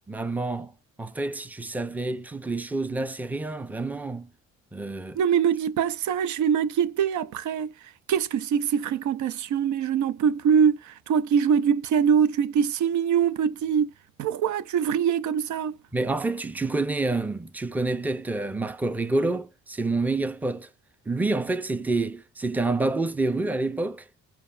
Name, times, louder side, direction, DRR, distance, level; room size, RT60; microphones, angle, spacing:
voice 1, 0.1-0.7 1.0-4.3 4.7-5.2 15.9-20.7 21.1-24.1, right 2 dB, 5° right, 0.5 m, -28 dB
voice 2, 5.2-7.7 8.1-13.9 14.2-15.7, right 7 dB, 70° right, 0.5 m, -23 dB
6.8 x 2.3 x 2.5 m
cardioid pair, 90°, 30 cm